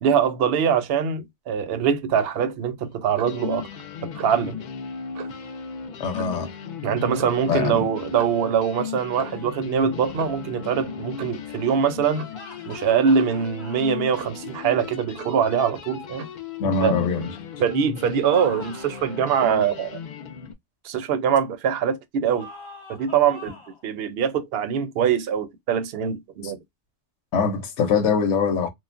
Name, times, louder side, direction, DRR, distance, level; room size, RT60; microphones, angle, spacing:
voice 1, 0.0-3.7 4.0-4.6 6.8-12.3 12.7-16.3 16.8-17.0 17.6-20.0 20.8-22.5 22.9-23.5 23.8-26.6, right 7 dB, 65° right, 0.7 m, -23 dB
Clock, 2.1-2.4 3.2-3.5 4.1-4.4 5.1-5.5 6.1-6.5 7.1-7.4 8.1-8.5 9.1-9.5 10.1-10.5 11.2-11.4 12.1-12.4 13.2-13.4 14.2-14.5 15.2-15.4 16.2-16.4, right 7 dB, 85° right, 1.0 m, -41 dB
sound 1, 2.8-2.9 3.2-20.5, left 6 dB, 60° left, 0.5 m, -36 dB
voice 2, 6.0-6.5 7.5-7.9 16.6-17.3 27.3-28.7, left 5 dB, 85° left, 1.0 m, -23 dB
sound 2, 12.3-14.0 18.1-19.6 22.3-23.8, left 2 dB, 25° left, 1.0 m, -44 dB
3.0 x 2.1 x 2.3 m
omnidirectional pair, 1.2 m